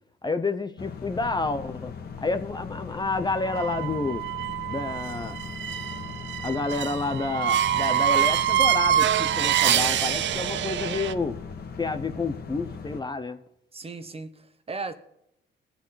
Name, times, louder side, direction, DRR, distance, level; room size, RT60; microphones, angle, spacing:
voice 1, 0.2-4.2 4.7-5.4 6.4-11.4 11.8-13.4, left 3 dB, 20° left, 0.8 m, -29 dB
sound 1, 0.8-13.0, left 5 dB, 50° left, 1.7 m, -39 dB
sound 2, 3.4-11.1, right 11 dB, 65° right, 0.6 m, -25 dB
voice 2, 13.7-14.9, right 3 dB, 30° right, 1.3 m, -36 dB
21.0 x 8.0 x 4.0 m
cardioid pair, 90°, 20 cm